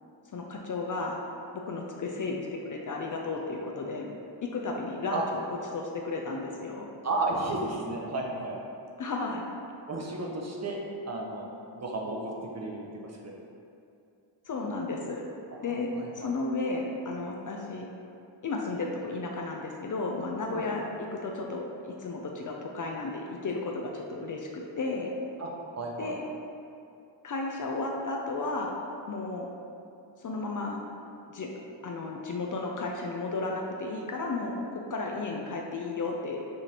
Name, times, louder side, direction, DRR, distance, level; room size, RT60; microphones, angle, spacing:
voice 1, 0.3-1.2 1.5-4.1 4.4-5.4 5.7-6.9 9.0-9.4 14.5-15.2 15.6-17.9 18.4-20.8 21.1-25.1 26.0-26.2 27.2-28.7 29.1-29.5 30.2-30.8 31.3-31.5 31.8-36.4, left 3 dB, 45° left, 0 dB, 0.4 m, -33 dB
voice 2, 7.0-8.6 9.9-10.8 11.0-11.5 11.7-13.4 15.5-16.3 20.5-20.7 25.4-25.5 25.8-26.2, right 2 dB, 35° right, -1 dB, 0.6 m, -33 dB
4.8 x 2.5 x 2.8 m, 2.6 s
cardioid pair, 50°, 48 cm